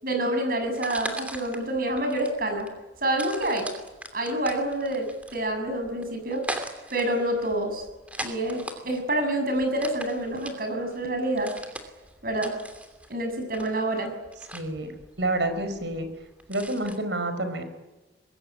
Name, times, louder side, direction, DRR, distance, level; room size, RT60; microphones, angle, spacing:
voice 1, 0.0-2.7 3.0-3.7 4.1-6.5 6.9-7.9 8.2-11.5 12.2-12.5 13.1-14.1, right 1 dB, 50° right, 5 dB, 7.0 m, -27 dB
sound 1, 0.6-17.0, right 1 dB, 10° right, 2.8 m, -40 dB
voice 2, 14.5-14.9 15.2-16.1 16.5-17.6, right 2 dB, 75° right, 9 dB, 5.1 m, -28 dB
25.0 x 21.5 x 9.8 m, 1.1 s
head